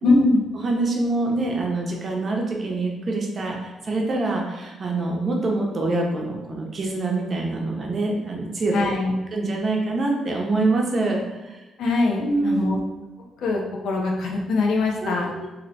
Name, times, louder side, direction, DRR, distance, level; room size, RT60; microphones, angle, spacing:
voice 1, 0.0-0.4 8.7-9.1 11.8-12.8 13.4-15.3, left 3 dB, 75° left, 0 dB, 0.6 m, -22 dB
voice 2, 0.5-8.9 9.3-11.6 12.2-12.7 15.0-15.5, right 2 dB, 40° right, 0 dB, 0.7 m, -25 dB
2.7 x 2.1 x 4.0 m, 1.1 s
cardioid pair, 90°, 0 cm